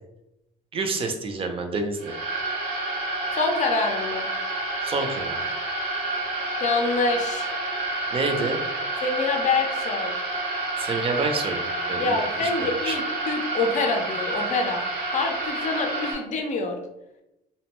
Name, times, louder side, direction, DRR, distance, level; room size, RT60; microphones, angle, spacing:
voice 1, 0.7-2.2 4.8-5.4 8.1-8.6 10.8-13.0, right 3 dB, 35° right, 5 dB, 0.5 m, -28 dB
sound 1, 2.0-16.1, right 2 dB, 90° right, 0.8 m, -29 dB
voice 2, 3.4-4.3 6.6-7.5 9.0-10.1 12.0-14.8 15.1-16.8, left 3 dB, 45° left, 3 dB, 0.5 m, -26 dB
2.5 x 2.1 x 2.9 m, 0.88 s
cardioid pair, 110°, 17 cm